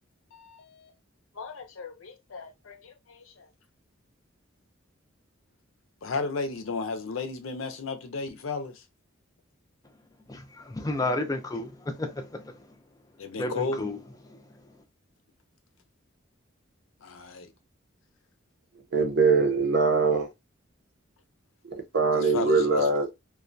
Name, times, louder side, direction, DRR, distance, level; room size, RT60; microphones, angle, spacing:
voice 1, 0.3-0.9 1.4-3.5 6.0-8.8 13.2-13.9 17.0-17.5 22.1-22.9, left 4 dB, 80° left, 0.5 m, -34 dB
voice 2, 10.3-12.4 13.4-14.0, left 2 dB, 15° left, 0.4 m, -31 dB
voice 3, 18.9-20.3 21.9-23.1, right 4 dB, 55° right, 0.6 m, -22 dB
2.3 x 2.2 x 2.5 m
head